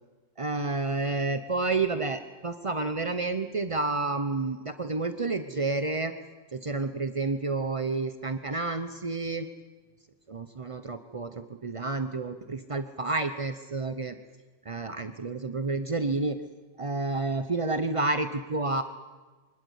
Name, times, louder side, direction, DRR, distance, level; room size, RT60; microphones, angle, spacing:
voice 1, 0.4-6.1 6.5-9.5 10.3-14.2 14.7-16.4 16.8-18.8, right 3 dB, 45° right, 9 dB, 0.4 m, -30 dB
24.5 x 20.0 x 8.3 m, 1.3 s
omnidirectional pair, 2.0 m